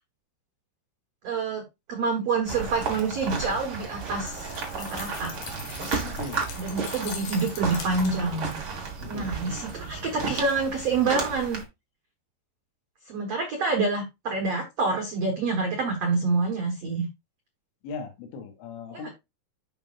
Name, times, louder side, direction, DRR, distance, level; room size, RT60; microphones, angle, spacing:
voice 1, 1.2-1.6 1.9-5.3 6.6-8.6 9.1-11.6 13.1-17.1 18.9-19.1, right 4 dB, 85° right, 2 dB, 1.4 m, -27 dB
sound 1, 2.5-11.6, right 4 dB, 45° right, 1.8 m, -33 dB
sound 2, 4.3-8.4, left 7 dB, 65° left, 3.1 m, -42 dB
voice 2, 6.0-6.5 9.0-9.4 17.8-19.1, left 4 dB, 85° left, 4 dB, 3.5 m, -38 dB
11.0 x 5.3 x 2.5 m, 0.22 s
omnidirectional pair, 5.1 m